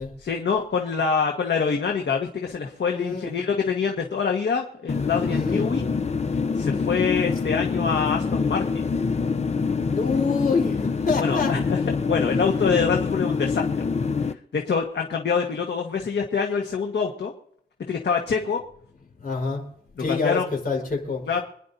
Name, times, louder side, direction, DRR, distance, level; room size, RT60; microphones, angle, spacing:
voice 1, 0.2-5.8 6.6-8.9 11.2-11.8 12.1-13.9 14.2-17.3 17.9-18.6 20.1-20.4 21.3-21.4, left 5 dB, 85° left, 2 dB, 1.5 m, -25 dB
voice 2, 2.9-3.3 5.3-5.7 9.9-11.5 12.7-12.9 19.2-19.7 20.0-21.2, left 4 dB, 55° left, 0 dB, 4.5 m, -26 dB
sound 1, 4.9-14.3, left 5 dB, 40° left, 0.6 m, -25 dB
27.0 x 10.5 x 2.7 m, 0.67 s
wide cardioid pair, 105°, 17 cm